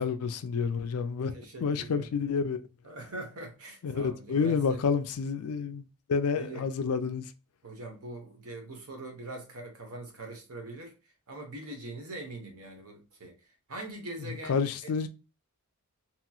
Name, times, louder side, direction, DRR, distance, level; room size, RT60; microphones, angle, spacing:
voice 1, 0.0-1.3 1.6-2.6 3.8-7.3 14.5-15.1, left 5 dB, 75° left, 0.4 m, -29 dB
voice 2, 1.3-2.1 2.8-4.8 6.3-6.7 7.6-10.9 11.3-13.3 13.7-14.9, right 2 dB, 75° right, 1.0 m, -42 dB
3.0 x 3.0 x 2.3 m
head